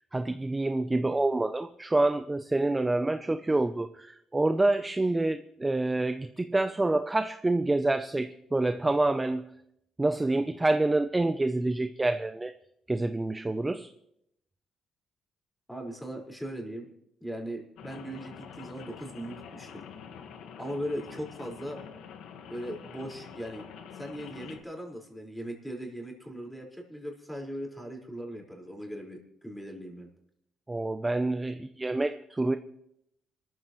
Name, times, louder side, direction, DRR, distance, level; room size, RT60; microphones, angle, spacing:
voice 1, 0.1-9.4 10.0-12.5 12.9-13.9 30.7-32.6, right 2 dB, 15° right, 9 dB, 0.7 m, -27 dB
voice 2, 15.7-16.9 17.2-19.8 20.6-21.8 22.5-23.6 23.9-30.1, equal, 5° left, 0 dB, 5.0 m, -39 dB
Rain, 17.8-24.6, left 7 dB, 85° left, 1.6 m, -46 dB
27.0 x 14.0 x 3.2 m, 0.78 s
cardioid pair, 90°, 0 cm